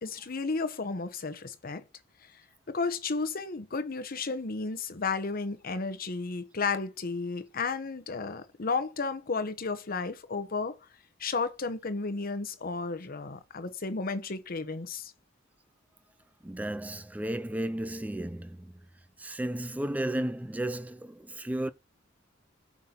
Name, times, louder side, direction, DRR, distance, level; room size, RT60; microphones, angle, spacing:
voice 1, 0.0-1.8 2.7-10.8 11.2-15.1, left 4 dB, 50° left, 0.9 m, -33 dB
voice 2, 16.4-18.8 19.2-21.7, right 1 dB, 10° right, 0.4 m, -33 dB
9.1 x 6.0 x 2.9 m
head